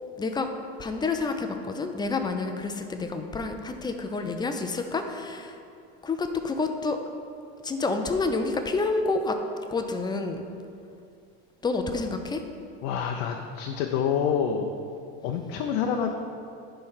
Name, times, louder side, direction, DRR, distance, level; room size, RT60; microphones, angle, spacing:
voice 1, 0.2-0.5 0.8-5.6 6.0-7.0 7.6-9.4 9.7-10.4 11.6-12.4, left 3 dB, 15° left, 6 dB, 0.5 m, -28 dB
voice 2, 12.8-14.7 15.2-16.1, left 7 dB, 70° left, 3 dB, 0.6 m, -27 dB
10.0 x 3.4 x 5.6 m, 2.5 s
supercardioid pair, 120°, 31 cm